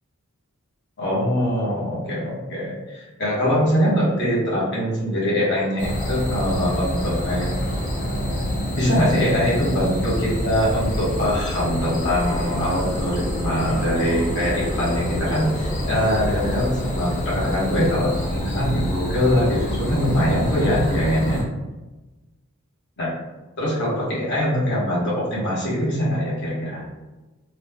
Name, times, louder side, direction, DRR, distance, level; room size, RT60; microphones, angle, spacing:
voice 1, 1.0-7.5 8.8-21.4 23.0-23.1 23.6-26.8, equal, 50° left, -8 dB, 1.1 m, -23 dB
sound 1, 5.8-21.4, equal, 35° left, 0.7 m, -26 dB
3.0 x 2.1 x 3.4 m, 1.1 s
head